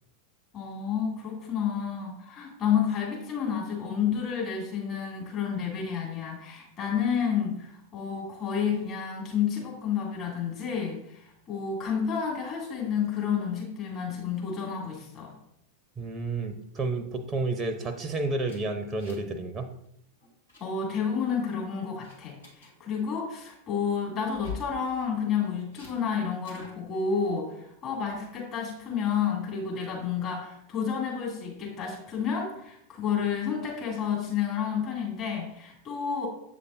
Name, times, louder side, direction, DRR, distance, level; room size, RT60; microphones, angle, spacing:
voice 1, 0.5-15.3 20.6-36.3, left 7 dB, 30° left, -3 dB, 2.6 m, -30 dB
voice 2, 16.0-19.7, right 3 dB, 15° right, 7 dB, 0.7 m, -31 dB
sound 1, 18.5-19.4 19.6-19.9 20.2-20.6 21.2-21.5 22.0-22.7 24.2-24.7 25.7-25.9 26.4-26.8, left 7 dB, 75° left, 2.6 m, -43 dB
8.2 x 6.7 x 2.6 m, 0.75 s
figure-of-eight pair, 90°, 0 cm